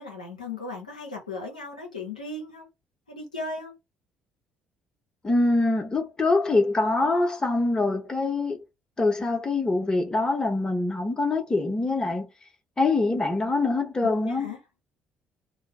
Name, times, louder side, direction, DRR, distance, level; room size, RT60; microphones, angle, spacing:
voice 1, 0.0-2.7 3.1-3.8 14.0-14.6, left 3 dB, 85° left, 0.5 m, -37 dB
voice 2, 5.2-8.6 9.0-12.3 12.8-14.5, left 2 dB, 20° left, 0.8 m, -24 dB
2.4 x 2.0 x 3.5 m
figure-of-eight pair, 50°, 4 cm